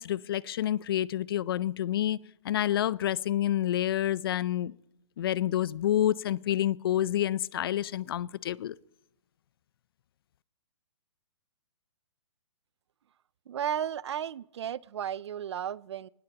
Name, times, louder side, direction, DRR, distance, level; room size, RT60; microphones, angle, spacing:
voice 1, 0.0-2.2 2.4-4.7 5.2-8.7, left 12 dB, 50° left, 22 dB, 0.5 m, -28 dB
voice 2, 13.5-16.1, right 9 dB, 60° right, 22 dB, 0.5 m, -34 dB
22.5 x 19.5 x 2.9 m, 0.85 s
hypercardioid pair, 155°, 16 cm